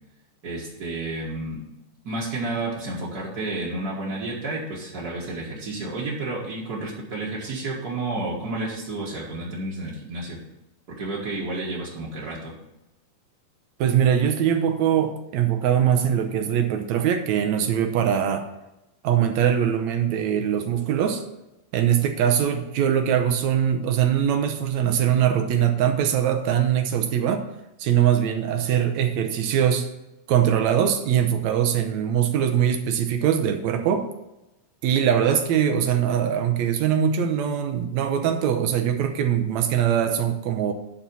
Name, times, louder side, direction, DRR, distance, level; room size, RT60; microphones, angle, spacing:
voice 1, 0.4-1.6 2.0-10.4 10.9-12.5, right 2 dB, 40° right, -6 dB, 1.4 m, -31 dB
voice 2, 13.8-18.5 19.0-21.2 21.7-27.5 27.8-29.9 30.3-34.1 34.8-40.7, right 9 dB, 75° right, 6 dB, 1.7 m, -22 dB
11.0 x 4.3 x 6.9 m, 0.94 s
omnidirectional pair, 3.9 m